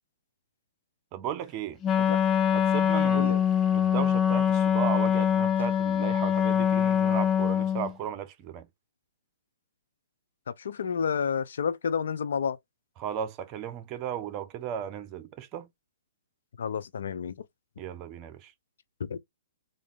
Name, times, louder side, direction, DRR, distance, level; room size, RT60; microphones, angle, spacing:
voice 1, 1.1-1.8 2.5-3.3 3.7-8.7 13.0-15.7 17.8-18.5, right 9 dB, 30° right, 0.8 m, -35 dB
Wind instrument woodwind instrument, 1.8-7.9, left 8 dB, 20° left, 0.6 m, -24 dB
voice 2, 10.5-12.6 16.6-17.3 19.0-19.2, left 6 dB, 70° left, 0.5 m, -30 dB
3.7 x 2.6 x 3.5 m
hypercardioid pair, 130°, 0 cm